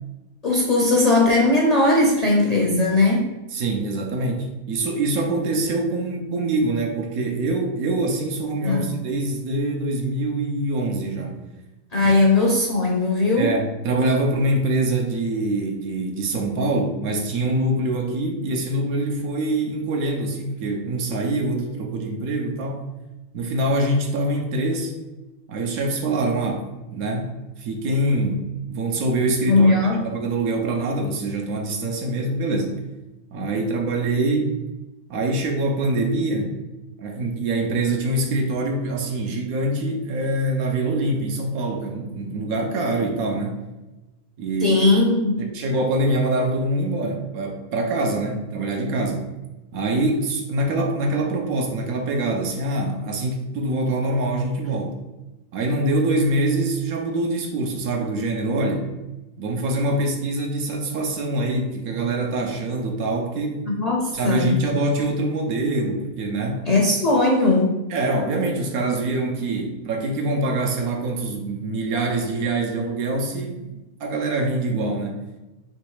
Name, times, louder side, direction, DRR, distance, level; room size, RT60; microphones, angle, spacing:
voice 1, 0.4-3.3 8.6-8.9 11.9-13.5 29.4-30.0 44.6-45.3 63.7-64.6 66.7-67.8, left 2 dB, 45° left, -3 dB, 0.5 m, -18 dB
voice 2, 3.5-11.4 12.0-12.2 13.4-22.9 23.3-25.0 25.5-26.6 26.9-32.8 33.3-34.6 35.1-36.5 37.0-43.6 44.4-44.8 45.4-49.3 49.7-55.0 55.5-58.9 59.4-63.7 64.1-66.7 67.9-75.2, right 2 dB, 80° right, 2 dB, 1.2 m, -24 dB
3.3 x 3.0 x 4.7 m, 1.1 s
omnidirectional pair, 1.5 m